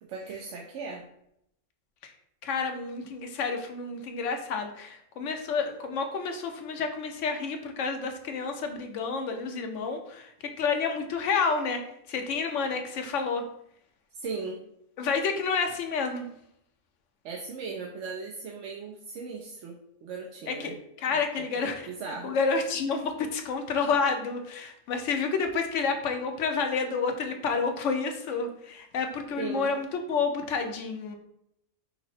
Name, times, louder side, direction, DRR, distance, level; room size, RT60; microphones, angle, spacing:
voice 1, 0.0-1.0 14.1-14.6 17.2-20.8 21.1-21.5 21.9-22.4 29.4-29.7, right 4 dB, 85° right, -1 dB, 1.0 m, -38 dB
voice 2, 2.4-10.3 10.6-11.8 12.1-13.4 15.0-16.3 20.5-20.7 21.0-21.8 22.2-31.2, left 5 dB, 90° left, 5 dB, 1.0 m, -29 dB
5.5 x 2.0 x 4.1 m, 0.76 s
omnidirectional pair, 1.2 m